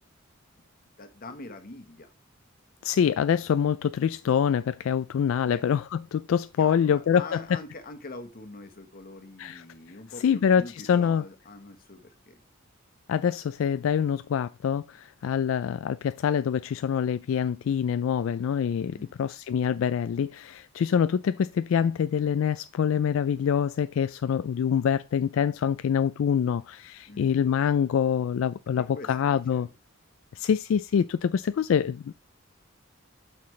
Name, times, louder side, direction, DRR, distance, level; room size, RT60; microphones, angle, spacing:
voice 1, 1.0-2.1 5.4-5.6 6.6-12.4 18.9-19.1 27.1-27.5 28.8-29.7, left 2 dB, 45° left, 1.2 m, -44 dB
voice 2, 2.8-7.4 9.4-9.6 10.2-11.2 13.1-29.7 30.3-32.1, left 7 dB, 70° left, 0.3 m, -25 dB
8.3 x 5.8 x 3.2 m
head